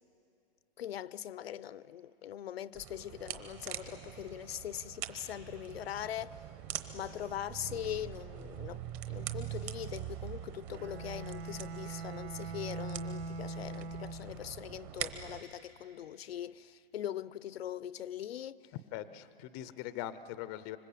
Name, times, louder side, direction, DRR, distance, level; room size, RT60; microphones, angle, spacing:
voice 1, 0.8-6.4 6.9-18.6, left 11 dB, 80° left, 0.7 m, -41 dB
sound 1, 2.7-15.4, right 11 dB, 30° right, 1.1 m, -44 dB
Bowed string instrument, 10.7-14.5, right 3 dB, 85° right, 1.2 m, -42 dB
voice 2, 18.9-20.8, left 12 dB, 20° left, 0.5 m, -41 dB
26.0 x 25.0 x 8.4 m
hypercardioid pair, 155°, 31 cm